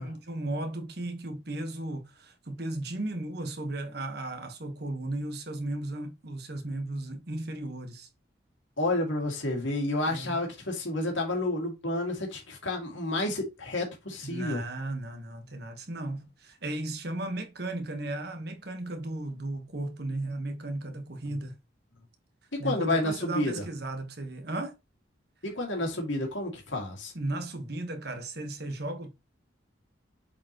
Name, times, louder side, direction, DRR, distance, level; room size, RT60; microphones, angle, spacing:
voice 1, 0.0-8.1 10.1-10.4 14.2-21.5 22.6-24.7 27.1-29.1, right 2 dB, 55° right, 1.4 m, -35 dB
voice 2, 8.8-14.6 22.6-23.6 25.4-27.1, left 2 dB, 80° left, 2.4 m, -30 dB
7.4 x 4.4 x 3.1 m
head